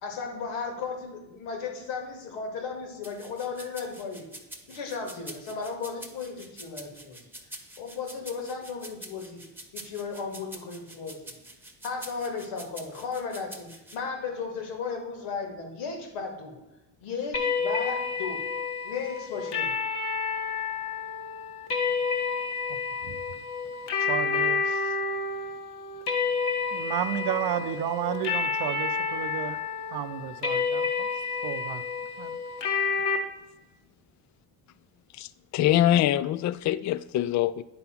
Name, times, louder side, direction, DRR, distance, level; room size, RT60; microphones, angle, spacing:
voice 1, 0.0-4.3 4.7-7.3 7.8-9.4 9.7-11.3 11.8-16.6 17.0-18.4 18.8-19.7, left 5 dB, 80° left, 2 dB, 2.2 m, -35 dB
sound 1, 3.0-14.0, right 1 dB, 5° right, 1.2 m, -45 dB
sound 2, 17.3-33.2, left 5 dB, 60° left, 1.4 m, -29 dB
voice 2, 24.0-24.9 26.7-29.6 29.9-31.1 31.4-31.8 32.2-32.4, right 11 dB, 60° right, 10 dB, 0.7 m, -32 dB
voice 3, 35.1-37.6, left 12 dB, 40° left, 17 dB, 0.4 m, -24 dB
9.8 x 3.9 x 5.8 m, 0.98 s
supercardioid pair, 85°, 45 cm